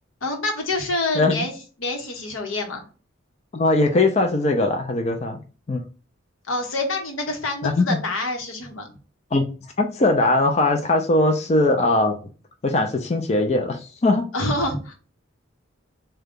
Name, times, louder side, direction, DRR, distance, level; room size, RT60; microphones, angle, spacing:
voice 1, 0.2-1.5 1.8-2.8 6.5-8.9 14.3-14.9, left 2 dB, 90° left, 3 dB, 0.9 m, -26 dB
voice 2, 3.5-5.4 5.7-5.8 7.6-8.0 9.3-9.4 9.8-12.2 12.6-14.2, left 2 dB, 30° left, 4 dB, 0.4 m, -20 dB
3.7 x 2.2 x 3.6 m, 0.37 s
head